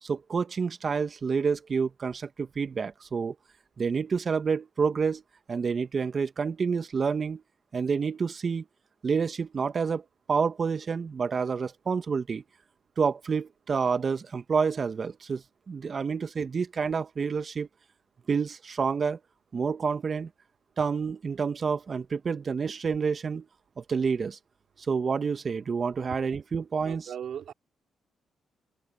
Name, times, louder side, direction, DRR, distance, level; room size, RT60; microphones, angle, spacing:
voice 1, 0.0-3.3 3.8-5.2 5.5-7.4 7.7-8.6 9.0-12.4 13.0-17.7 18.3-19.2 19.5-20.3 20.8-23.5 23.8-24.4 24.9-27.1, right 5 dB, 50° right, 1.6 m, -28 dB
voice 2, 26.8-27.5, right 9 dB, 70° right, 4.1 m, -37 dB
supercardioid pair, 55°, 0 cm